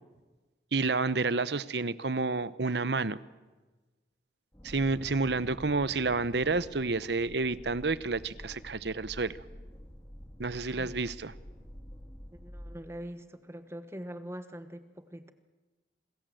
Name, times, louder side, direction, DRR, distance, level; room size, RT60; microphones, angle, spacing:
voice 1, 0.7-3.2 4.6-9.3 10.4-11.3, right 3 dB, 65° right, 16 dB, 0.9 m, -30 dB
sound 1, 4.5-12.8, equal, 15° left, 2.6 m, -48 dB
voice 2, 12.3-15.3, equal, 15° right, 10 dB, 1.2 m, -43 dB
28.5 x 21.0 x 7.8 m, 1.2 s
head